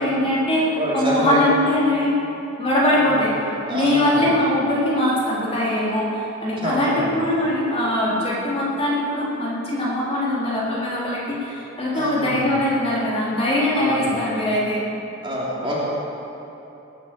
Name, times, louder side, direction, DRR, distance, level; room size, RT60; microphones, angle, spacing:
voice 1, 0.0-2.2 2.6-3.3 3.7-14.8, left 1 dB, 30° left, -7 dB, 3.6 m, -22 dB
voice 2, 0.8-1.4 2.9-3.1 3.7-4.3 6.6-7.1 11.9-12.5 13.7-14.1 15.2-15.8, equal, 25° right, -6 dB, 3.2 m, -26 dB
19.5 x 9.1 x 6.9 m, 3.0 s
head